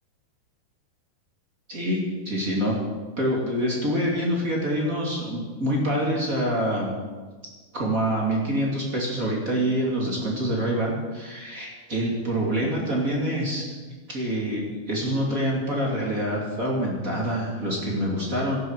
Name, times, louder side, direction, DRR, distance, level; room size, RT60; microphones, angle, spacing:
voice 1, 1.7-2.0 2.2-2.7 3.2-6.9 7.7-13.7 14.1-18.6, equal, 25° right, -3 dB, 2.4 m, -26 dB
17.0 x 12.0 x 4.8 m, 1.4 s
omnidirectional pair, 4.4 m